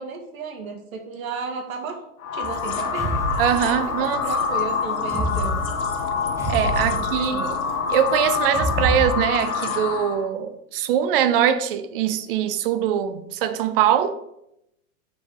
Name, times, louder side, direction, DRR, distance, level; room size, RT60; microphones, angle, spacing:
voice 1, 0.0-2.0 2.3-3.4 3.7-5.6 6.8-7.5, right 5 dB, 75° right, 2.0 m, -34 dB
sound 1, 2.2-10.3, left 5 dB, 70° left, 1.4 m, -26 dB
sound 2, 2.4-4.1 5.0-7.6 8.5-9.1, right 1 dB, 5° right, 1.0 m, -28 dB
voice 2, 3.4-4.2 6.5-7.6 7.9-14.1, right 9 dB, 40° right, 0.6 m, -22 dB
7.2 x 4.5 x 4.7 m
supercardioid pair, 150°, 42 cm